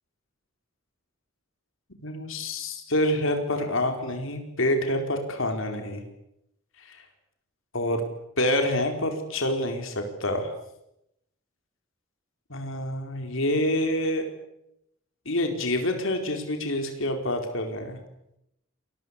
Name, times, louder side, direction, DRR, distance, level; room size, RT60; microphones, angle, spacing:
voice 1, 2.0-6.0 6.8-7.0 7.7-8.0 8.4-10.5 12.5-14.2 15.2-18.0, left 1 dB, 65° left, 5 dB, 4.6 m, -27 dB
29.0 x 22.0 x 8.3 m, 0.82 s
head